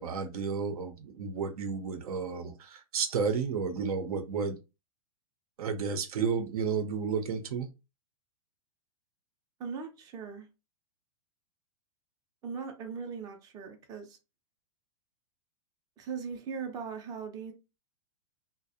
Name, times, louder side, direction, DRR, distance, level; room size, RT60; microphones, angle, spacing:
voice 1, 0.0-4.6 5.6-7.7, right 5 dB, 85° right, 0.6 m, -32 dB
voice 2, 9.6-10.5 12.4-14.2 16.0-17.5, right 6 dB, 20° right, 0.4 m, -39 dB
2.4 x 2.0 x 2.6 m
hypercardioid pair, 145°, 19 cm